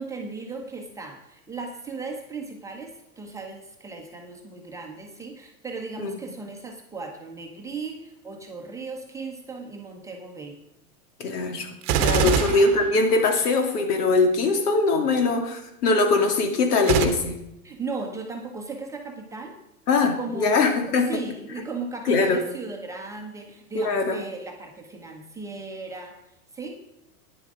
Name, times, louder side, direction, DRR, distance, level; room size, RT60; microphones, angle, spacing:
voice 1, 0.0-10.6 12.2-12.5 17.6-19.6 20.0-26.2 26.5-26.8, right 4 dB, 5° right, 1 dB, 0.9 m, -36 dB
voice 2, 11.2-11.7 12.0-17.3 19.9-21.1 22.1-22.4 23.7-24.2, left 3 dB, 90° left, 5 dB, 2.6 m, -22 dB
Gunshot gunfire, 11.8-13.6 16.8-17.0, right 8 dB, 30° right, 1.1 m, -23 dB
11.0 x 9.9 x 4.9 m, 0.86 s
supercardioid pair, 160°, 45 cm